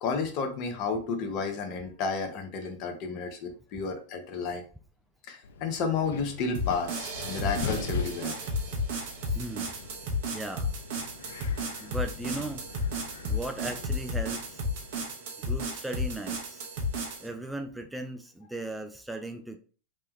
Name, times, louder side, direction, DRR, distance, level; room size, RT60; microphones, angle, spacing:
voice 1, 0.0-4.6 5.3-8.4, left 5 dB, 50° left, 6 dB, 0.7 m, -32 dB
Wind, 5.4-15.0, left 5 dB, 75° left, 0.3 m, -42 dB
sound 1, 6.5-17.3, left 1 dB, 60° right, 0.8 m, -33 dB
voice 2, 9.3-9.7 10.3-10.7 11.8-12.6 13.2-14.6 15.4-16.7 17.2-19.6, right 2 dB, 5° right, 5 dB, 0.3 m, -37 dB
3.1 x 2.2 x 3.1 m, 0.38 s
hypercardioid pair, 95°, 0 cm